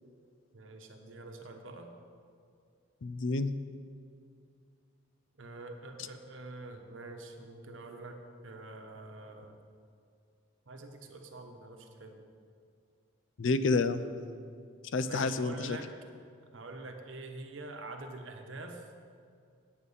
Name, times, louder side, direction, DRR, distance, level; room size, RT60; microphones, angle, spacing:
voice 1, 0.5-1.9 5.4-9.6 10.7-12.2 14.0-14.7 15.0-15.9 16.5-18.8, right 2 dB, 70° right, 4 dB, 1.0 m, -46 dB
voice 2, 3.0-3.5 13.4-14.0 14.9-15.8, left 3 dB, 65° left, 13 dB, 0.5 m, -29 dB
8.6 x 8.3 x 5.4 m, 2.3 s
head